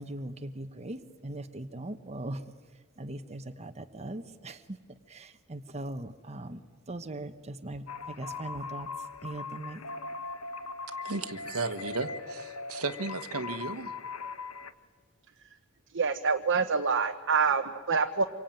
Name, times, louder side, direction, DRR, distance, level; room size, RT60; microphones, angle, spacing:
voice 1, 0.0-2.4 3.0-4.8 5.1-6.6 6.9-8.9 9.2-9.8, right 1 dB, 30° right, 7 dB, 1.1 m, -40 dB
sound 1, 7.9-14.7, left 4 dB, 70° left, 1.3 m, -40 dB
voice 2, 11.0-13.9, right 3 dB, 75° right, 9 dB, 1.6 m, -34 dB
voice 3, 15.9-18.2, right 5 dB, 60° right, 5 dB, 1.2 m, -26 dB
27.0 x 24.0 x 9.2 m, 1.5 s
head